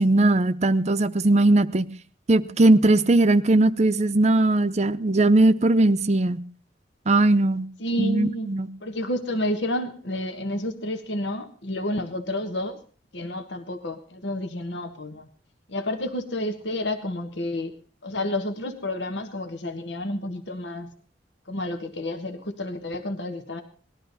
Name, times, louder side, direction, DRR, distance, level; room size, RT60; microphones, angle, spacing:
voice 1, 0.0-1.9 2.3-6.4 7.1-7.7 8.0-8.7, right 2 dB, 40° right, 12 dB, 0.7 m, -19 dB
voice 2, 7.8-8.5 8.8-12.8 13.1-15.3 15.7-17.7 18.0-20.9 21.5-23.6, left 1 dB, 75° left, 7 dB, 1.5 m, -30 dB
19.0 x 12.5 x 4.1 m, 0.38 s
head